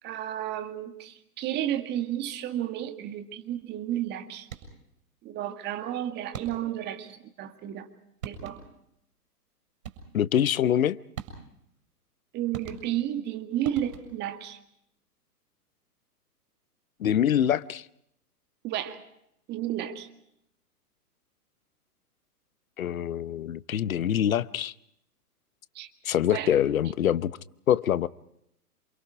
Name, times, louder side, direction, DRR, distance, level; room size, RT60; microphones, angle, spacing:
voice 1, 0.0-4.5 5.2-7.9 8.3-8.6 12.3-14.6 18.6-19.0 19.5-20.1 25.7-25.9 26.3-26.5, right 12 dB, 20° right, 1.9 m, -32 dB
sound 1, 4.4-4.9 6.3-6.9 7.9-8.0 8.2-8.9 9.8-10.3 11.2-11.7 12.5-13.2 13.6-14.3, right 7 dB, 60° right, 7.1 m, -42 dB
voice 2, 10.1-11.0 17.0-17.9 22.8-24.7 26.0-27.4 27.7-28.1, left 10 dB, 60° left, 0.9 m, -25 dB
28.0 x 28.0 x 4.9 m
figure-of-eight pair, 120°, 47 cm